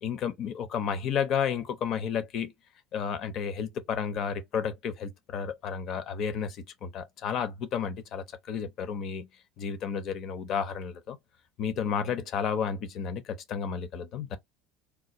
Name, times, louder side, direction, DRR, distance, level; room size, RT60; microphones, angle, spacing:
voice 1, 0.0-2.5 2.9-9.3 9.6-11.2 11.6-14.4, left 7 dB, 50° left, 0.6 m, -32 dB
3.4 x 2.3 x 2.8 m
figure-of-eight pair, 70°, 0 cm